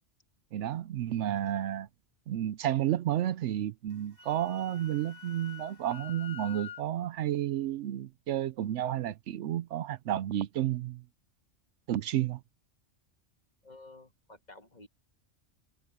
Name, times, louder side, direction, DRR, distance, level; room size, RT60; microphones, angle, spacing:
voice 1, 0.5-1.9 2.3-11.0 11.9-12.4, right 12 dB, 75° right, 0.9 m, -31 dB
Wind instrument woodwind instrument, 3.9-6.8, left 8 dB, 20° right, 3.5 m, -47 dB
voice 2, 13.6-14.9, left 2 dB, 35° left, 2.0 m, -52 dB
omnidirectional pair, 1.3 m